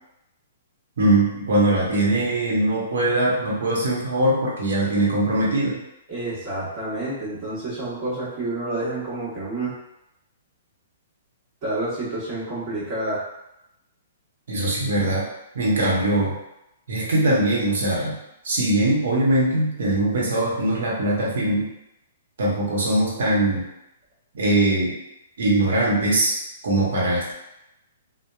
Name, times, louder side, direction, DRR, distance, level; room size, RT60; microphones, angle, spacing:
voice 1, 1.0-5.8 14.5-15.3 15.5-16.4 16.9-18.2 18.4-21.7 22.4-23.7 24.3-25.0 25.4-26.4 26.6-27.3, right 1 dB, 70° right, -4 dB, 0.9 m, -21 dB
voice 2, 6.1-9.7 11.6-13.2, right 2 dB, 35° right, -10 dB, 1.1 m, -29 dB
2.8 x 2.1 x 2.3 m, 0.87 s
hypercardioid pair, 130°, 0 cm